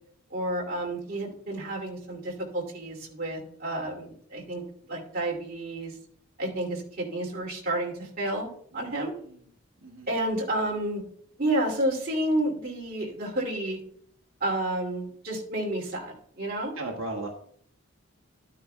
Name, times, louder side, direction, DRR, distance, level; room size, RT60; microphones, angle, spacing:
voice 1, 0.3-4.6 4.9-5.9 6.4-9.1 10.1-11.0 11.4-13.8 14.4-16.7, right 1 dB, 40° right, -1 dB, 2.5 m, -30 dB
voice 2, 9.8-10.1 16.8-17.3, right 2 dB, 70° right, 0 dB, 1.3 m, -36 dB
12.0 x 9.4 x 2.2 m, 0.62 s
head